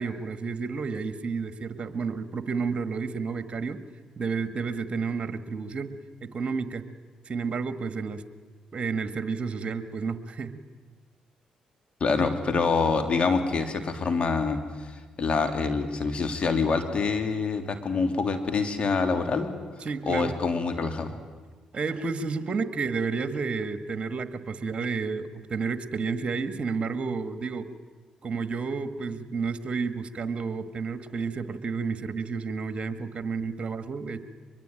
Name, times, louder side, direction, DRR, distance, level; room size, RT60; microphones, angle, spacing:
voice 1, 0.0-3.8 4.2-5.9 6.2-6.8 7.3-8.2 8.7-10.6 19.8-20.4 21.7-27.7 28.2-34.2, right 5 dB, 45° right, 10 dB, 1.8 m, -31 dB
voice 2, 12.0-19.5 20.1-21.2, left 4 dB, 45° left, 6 dB, 3.1 m, -26 dB
23.5 x 22.5 x 9.1 m, 1.4 s
supercardioid pair, 55°, 3 cm